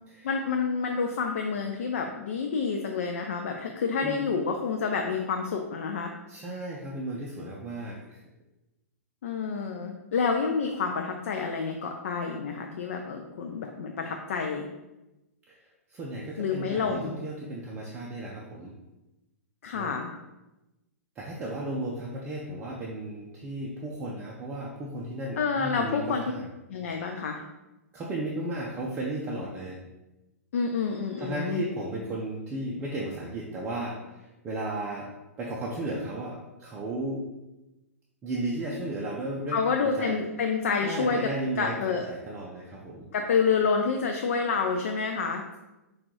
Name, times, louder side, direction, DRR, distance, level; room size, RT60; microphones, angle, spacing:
voice 1, 0.2-6.1 9.2-14.6 16.4-17.1 19.6-20.1 25.4-26.2 26.7-27.4 30.5-31.6 39.5-41.3 41.6-42.1 43.1-45.4, left 5 dB, 55° left, 3 dB, 0.4 m, -28 dB
voice 2, 6.3-8.2 15.5-15.6 15.9-18.7 19.7-19.9 21.2-26.5 27.9-29.8 31.2-35.1 35.4-37.2 38.2-40.2 40.8-43.1, right 1 dB, 20° right, -3 dB, 0.6 m, -34 dB
5.8 x 2.4 x 3.1 m, 1.0 s
figure-of-eight pair, 110°, 8 cm